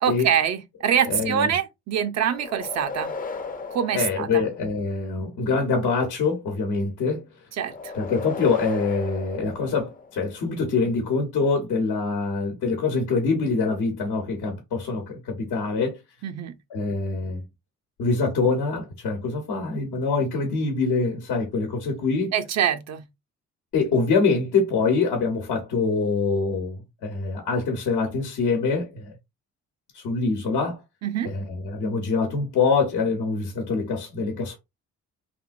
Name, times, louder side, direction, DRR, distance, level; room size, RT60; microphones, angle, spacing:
voice 1, 0.0-3.1 3.7-4.4 7.6-7.9 16.2-16.5 22.3-23.0 31.0-31.3, right 9 dB, 60° right, 0.5 m, -24 dB
voice 2, 1.0-1.5 3.9-7.2 7.9-16.0 16.7-17.4 18.0-22.3 23.7-29.1 29.9-30.8 31.2-34.6, left 4 dB, 80° left, 1.0 m, -25 dB
sound 1, 2.3-5.0 7.6-10.3, left 4 dB, 30° left, 0.5 m, -36 dB
3.3 x 2.5 x 2.4 m
cardioid pair, 90°, 30 cm